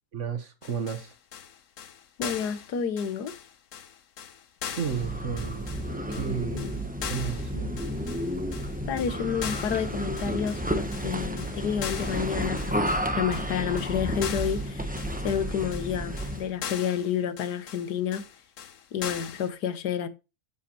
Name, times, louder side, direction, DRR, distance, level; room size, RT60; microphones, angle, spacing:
voice 1, 0.1-1.1 4.7-5.7 6.1-6.7 7.1-7.7, right 7 dB, 50° right, 1.5 m, -32 dB
sound 1, 0.6-19.5, left 8 dB, 60° left, 1.1 m, -40 dB
voice 2, 2.2-3.3 8.9-15.0 15.2-18.2 18.9-20.1, left 8 dB, 85° left, 1.6 m, -30 dB
sound 2, 4.8-16.5, equal, 10° right, 0.6 m, -31 dB
9.5 x 8.3 x 3.0 m
omnidirectional pair, 1.7 m